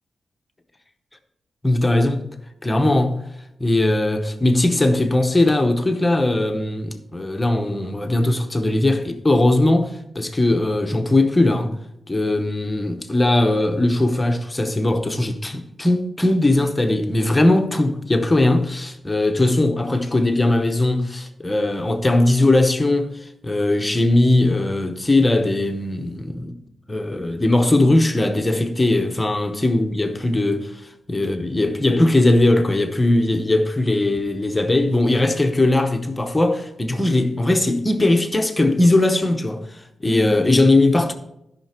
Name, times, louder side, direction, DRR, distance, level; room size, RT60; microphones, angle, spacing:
voice 1, 1.6-2.2 2.6-3.3 3.6-11.8 12.1-23.1 23.4-26.5 26.9-30.7 31.1-39.6 40.0-41.1, left 2 dB, 15° left, 0.8 m, -19 dB
12.5 x 5.8 x 4.3 m
wide cardioid pair, 175°, 0 cm